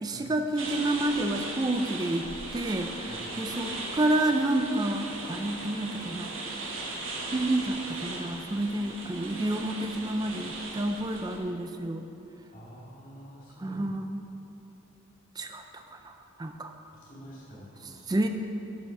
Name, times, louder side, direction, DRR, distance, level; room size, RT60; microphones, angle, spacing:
voice 1, 0.0-2.3 2.5-6.3 7.3-12.0 13.6-14.3 15.4-16.1 16.4-16.7 18.1-18.3, right 1 dB, 20° right, 5 dB, 0.4 m, -29 dB
sound 1, 0.6-11.4, right 2 dB, 65° right, 1.5 m, -38 dB
voice 2, 12.5-13.8 16.9-18.2, equal, 40° left, -8 dB, 2.6 m, -48 dB
12.5 x 5.6 x 5.9 m, 2.9 s
head